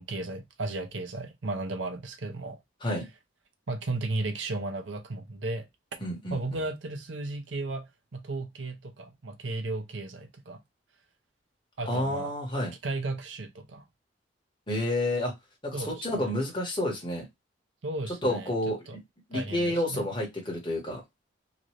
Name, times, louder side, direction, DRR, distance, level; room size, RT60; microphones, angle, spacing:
voice 1, 0.0-2.6 3.7-5.7 6.3-10.6 11.8-12.3 12.8-13.8 15.7-16.3 17.8-18.5 18.9-19.0 19.3-20.0, right 2 dB, 85° right, 0.7 m, -34 dB
voice 2, 6.0-6.6 11.9-12.7 14.7-15.3 15.6-17.3 18.1-19.0 19.3-21.0, left 1 dB, 25° left, 1.4 m, -30 dB
3.0 x 2.6 x 3.0 m
head